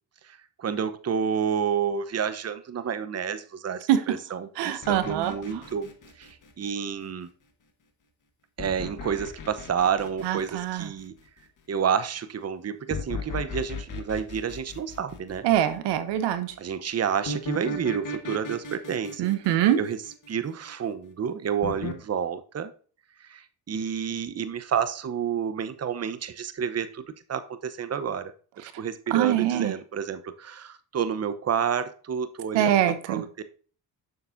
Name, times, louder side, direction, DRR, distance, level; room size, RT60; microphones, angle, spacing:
voice 1, 0.2-5.9 6.2-7.3 8.6-11.1 11.7-15.4 16.6-20.0 20.3-22.7 23.2-27.0 27.3-28.3 28.6-33.4, right 7 dB, 35° right, 12 dB, 0.9 m, -30 dB
voice 2, 4.6-5.3 10.2-10.9 15.4-16.5 19.2-19.8 29.1-29.7 32.5-33.2, right 11 dB, 85° right, 10 dB, 0.9 m, -23 dB
sound 1, 4.8-7.0 8.6-11.2 12.9-15.7 17.3-20.7 21.6-22.0, left 2 dB, 50° left, 1.7 m, -36 dB
6.8 x 6.8 x 2.6 m, 0.40 s
supercardioid pair, 65°, 41 cm